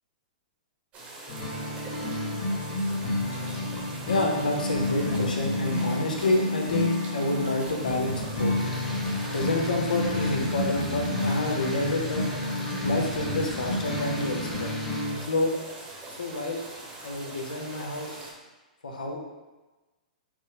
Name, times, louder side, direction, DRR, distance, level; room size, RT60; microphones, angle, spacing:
sound 1, 0.9-18.3, right 2 dB, 30° right, 0.9 m, -43 dB
sound 2, 1.3-15.2, left 1 dB, 50° left, 1.2 m, -30 dB
voice 1, 4.0-8.5 9.3-12.3 12.8-14.7 15.2-15.5 16.1-16.6 17.0-18.2 18.8-19.2, left 2 dB, 85° left, 1 dB, 0.7 m, -28 dB
sound 3, 8.5-15.0, left 1 dB, 10° left, 0.7 m, -42 dB
5.9 x 2.0 x 2.8 m, 1.2 s
hypercardioid pair, 120°, 4 cm